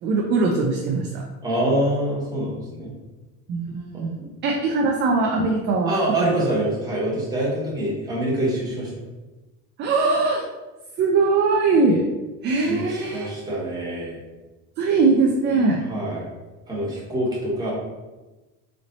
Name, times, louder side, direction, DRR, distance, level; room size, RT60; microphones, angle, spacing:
voice 1, 0.0-1.2 3.5-6.3 9.8-10.4 11.0-12.0 12.4-13.5 14.8-15.8, right 3 dB, 30° right, 1 dB, 0.4 m, -21 dB
voice 2, 1.4-2.9 4.2-4.3 5.9-8.9 12.6-14.2 15.9-16.3 16.7-17.7, right 1 dB, 10° right, -6 dB, 1.3 m, -25 dB
4.1 x 3.2 x 3.9 m, 1.1 s
cardioid pair, 160°, 35 cm